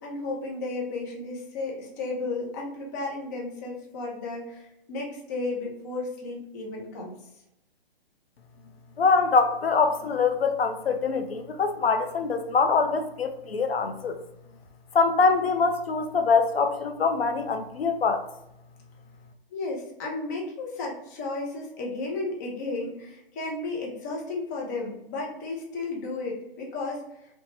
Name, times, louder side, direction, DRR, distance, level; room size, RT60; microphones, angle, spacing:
voice 1, 0.0-7.2 19.5-27.0, left 3 dB, 20° left, -2 dB, 0.5 m, -33 dB
voice 2, 9.0-14.2 14.9-18.2, left 4 dB, 90° left, 7 dB, 0.5 m, -24 dB
2.9 x 2.1 x 3.0 m, 0.83 s
hypercardioid pair, 140°, 29 cm